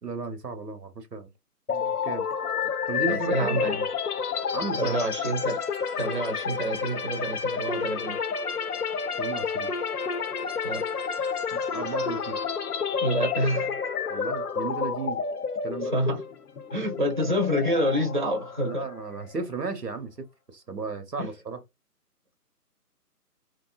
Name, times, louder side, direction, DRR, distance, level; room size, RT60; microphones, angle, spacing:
voice 1, 0.0-1.3 1.7-2.3 2.9-3.6 4.5-5.0 9.2-9.7 11.5-12.4 14.1-15.2 15.6-15.9 18.6-21.6, right 4 dB, 85° right, 0.8 m, -34 dB
sound 1, 1.7-19.4, left 6 dB, 70° left, 0.5 m, -30 dB
voice 2, 3.1-3.8 4.8-5.6 6.0-8.2 10.6-10.8 13.0-13.8 15.8-16.2 16.7-18.9 21.2-21.3, equal, 30° right, 0.6 m, -27 dB
2.5 x 2.1 x 2.2 m
figure-of-eight pair, 145°, 47 cm